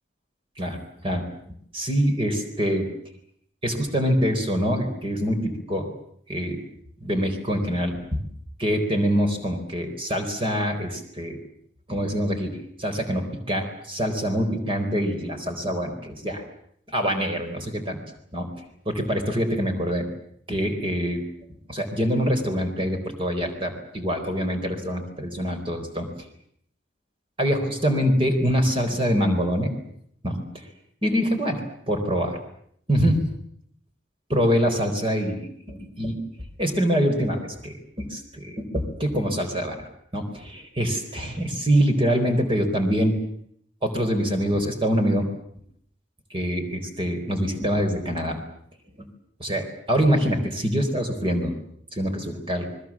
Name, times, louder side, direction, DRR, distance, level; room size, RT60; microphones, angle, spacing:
voice 1, 1.7-2.9 3.6-5.9 6.3-6.6 7.0-8.2 8.6-11.4 11.9-16.4 16.9-18.0 18.3-18.5 18.9-20.1 20.5-21.2 21.7-26.1 27.4-29.7 30.2-30.4 31.0-32.4 32.9-33.3 34.3-36.2 36.6-39.8 40.1-43.2 43.8-45.3 46.3-48.4 49.0-49.1 49.4-51.5 51.9-52.7, equal, 30° right, 5 dB, 4.3 m, -25 dB
29.5 x 21.5 x 7.5 m, 0.67 s
head